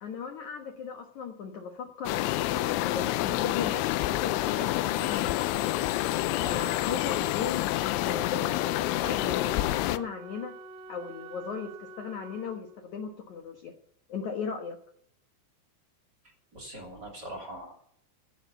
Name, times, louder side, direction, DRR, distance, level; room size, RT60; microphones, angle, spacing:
voice 1, 0.0-5.8 6.4-7.7 8.0-8.7 9.0-10.5 10.9-13.7 14.1-14.8, left 6 dB, 70° left, 4 dB, 1.8 m, -37 dB
sound 1, 2.1-10.0, left 15 dB, 85° left, 3.1 m, -28 dB
Wind instrument woodwind instrument, 8.6-13.0, right 2 dB, 90° right, 3.2 m, -47 dB
voice 2, 16.5-17.7, right 1 dB, 25° right, 2 dB, 2.6 m, -41 dB
16.0 x 7.6 x 6.9 m, 0.66 s
omnidirectional pair, 5.4 m